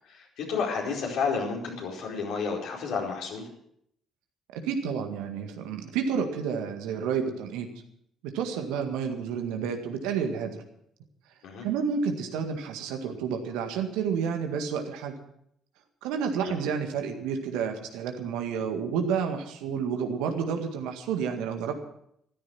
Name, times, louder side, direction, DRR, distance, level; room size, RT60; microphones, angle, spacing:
voice 1, 0.1-3.5 11.4-11.6 16.4-16.5, left 5 dB, 65° left, -2 dB, 4.7 m, -31 dB
voice 2, 4.5-7.7 8.2-10.6 11.6-15.1 16.0-21.8, right 6 dB, 70° right, 5 dB, 1.9 m, -30 dB
14.5 x 13.5 x 6.1 m, 0.72 s
hypercardioid pair, 45°, 0 cm